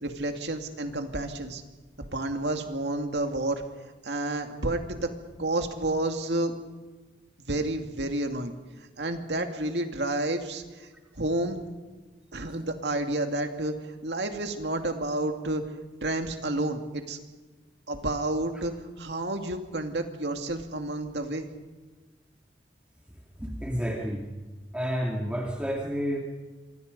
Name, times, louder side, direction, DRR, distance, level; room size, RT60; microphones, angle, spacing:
voice 1, 0.0-1.6 2.0-3.6 4.0-5.0 5.4-6.6 7.5-8.5 9.0-10.9 11.2-11.7 12.3-13.7 14.0-15.6 16.0-17.2 17.9-18.7 19.0-21.5, right 2 dB, 70° right, 5 dB, 2.4 m, -30 dB
voice 2, 23.4-24.3 24.7-26.2, equal, 5° right, -1 dB, 2.4 m, -30 dB
27.0 x 24.5 x 5.4 m, 1.2 s
head